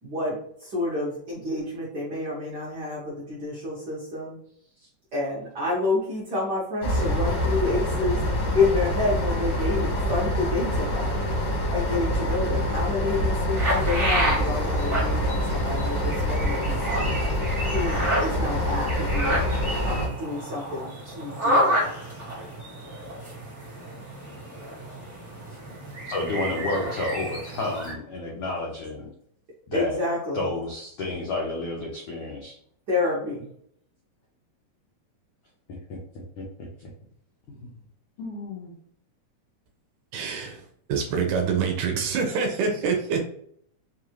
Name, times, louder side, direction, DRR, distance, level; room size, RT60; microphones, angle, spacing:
voice 1, 0.0-4.4 5.1-8.2 8.5-11.1 11.7-17.2 17.7-19.4 19.8-21.8 29.7-30.5 32.9-33.5, left 3 dB, 55° right, -7 dB, 1.2 m, -29 dB
sound 1, 6.8-20.1, equal, 65° left, 1.3 m, -26 dB
sound 2, 13.6-27.9, equal, 35° right, 1.0 m, -30 dB
voice 2, 26.1-29.1 29.7-30.0 30.3-32.6 36.4-36.9 37.6-37.7 38.2-38.7, left 2 dB, 90° left, -3 dB, 1.3 m, -31 dB
voice 3, 40.1-40.6 40.9-43.2, right 5 dB, 75° right, 3 dB, 1.9 m, -25 dB
5.2 x 2.5 x 3.0 m, 0.66 s
omnidirectional pair, 3.8 m